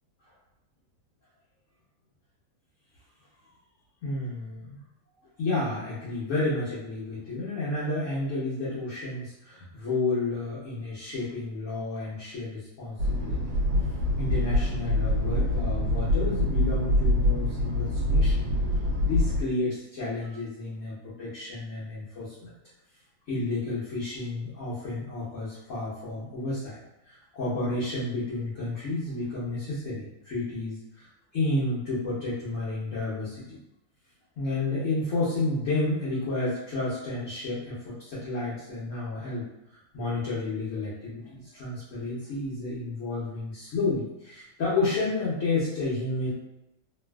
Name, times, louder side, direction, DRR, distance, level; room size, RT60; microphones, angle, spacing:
voice 1, 4.0-4.8 5.4-13.4 14.2-18.5 19.0-22.5 23.3-26.8 27.0-31.1 31.3-33.6 34.4-39.4 39.9-46.3, left 2 dB, 55° left, -9 dB, 1.0 m, -31 dB
sound 1, 13.0-19.4, left 1 dB, 80° right, 1.4 m, -25 dB
3.2 x 2.4 x 2.2 m, 0.92 s
omnidirectional pair, 2.0 m